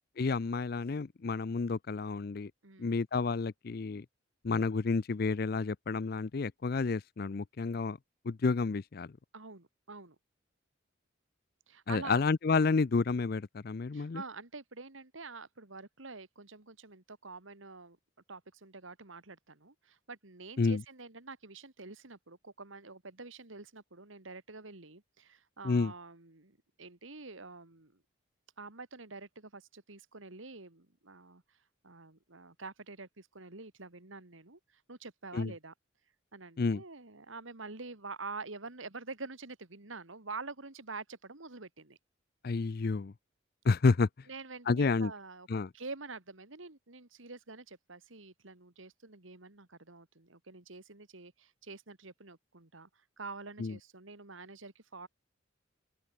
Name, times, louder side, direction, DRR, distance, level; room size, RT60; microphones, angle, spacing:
voice 1, 0.2-2.5 2.8-4.1 4.4-8.0 8.2-9.1 11.9-14.2 20.6-20.8 25.6-25.9 35.3-35.5 36.6-36.8 42.4-43.1 43.6-44.1 44.7-45.1 45.5-45.7 53.6-53.8, left 4 dB, 50° left, 0.5 m, -30 dB
voice 2, 2.6-2.9 9.3-10.2 11.7-12.2 13.9-18.0 18.3-28.0 28.6-31.4 31.8-35.7 36.3-42.0 44.3-52.9 53.2-55.1, right 3 dB, 75° right, 2.3 m, -47 dB
open air
head